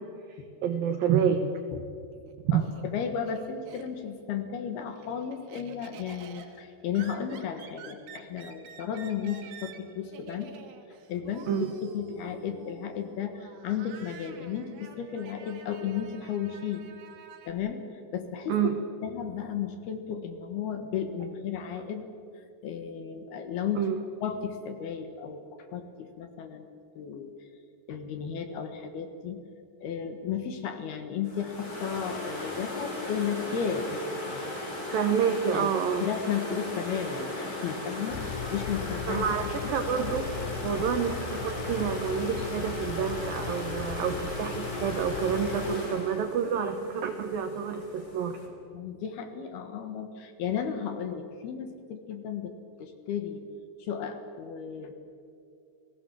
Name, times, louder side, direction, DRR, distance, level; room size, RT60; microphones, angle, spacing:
voice 1, 0.0-1.4 2.4-2.6 11.5-11.7 18.5-18.8 23.8-24.0 34.9-36.1 39.1-40.3 40.6-48.4, right 7 dB, 80° right, 7 dB, 2.1 m, -28 dB
Laughter, 2.1-4.2 4.6-17.5, right 5 dB, 60° right, 3.6 m, -49 dB
voice 2, 2.5-10.5 11.1-16.8 17.5-17.8 18.1-18.7 19.0-22.0 22.4-23.9 24.2-25.4 25.7-26.7 27.0-27.3 27.9-29.4 29.8-34.8 35.5-35.7 36.0-39.7 48.7-53.4 53.8-54.9, left 8 dB, 65° left, 7 dB, 2.9 m, -34 dB
sound 1, 31.2-48.5, left 1 dB, 20° left, 3.6 m, -37 dB
sound 2, 38.1-45.8, left 8 dB, 85° left, 2.3 m, -38 dB
30.0 x 19.0 x 7.5 m, 2.5 s
omnidirectional pair, 5.7 m